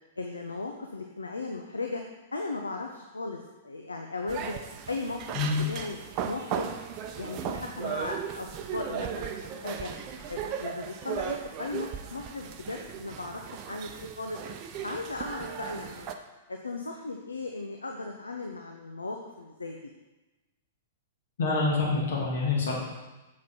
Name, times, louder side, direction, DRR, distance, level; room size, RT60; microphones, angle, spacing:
voice 1, 0.2-2.0 2.3-3.4 3.6-4.6 4.9-5.2 5.6-6.0 6.3-6.7 7.1-9.9 10.3-13.9 14.2-14.4 14.8-16.1 16.5-19.8, left 3 dB, 80° left, 3 dB, 0.8 m, -36 dB
sound 1, 4.3-16.1, right 8 dB, 35° right, 0.7 m, -37 dB
voice 2, 21.4-22.8, left 3 dB, 65° left, -3 dB, 2.4 m, -26 dB
7.4 x 7.3 x 4.5 m, 1.1 s
figure-of-eight pair, 105°, 0 cm